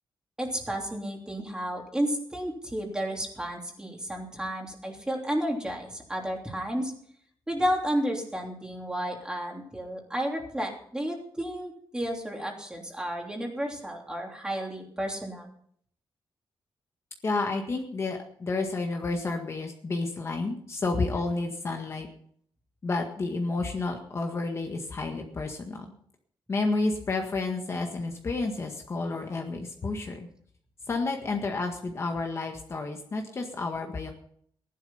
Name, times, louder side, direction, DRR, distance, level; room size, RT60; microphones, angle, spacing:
voice 1, 0.4-6.9 7.5-15.5, equal, 10° right, 1 dB, 3.1 m, -32 dB
voice 2, 17.2-22.1 22.8-25.9 26.5-30.3 30.9-34.1, left 3 dB, 35° left, 2 dB, 1.8 m, -30 dB
16.5 x 11.5 x 5.6 m, 0.62 s
wide cardioid pair, 150°, 8 cm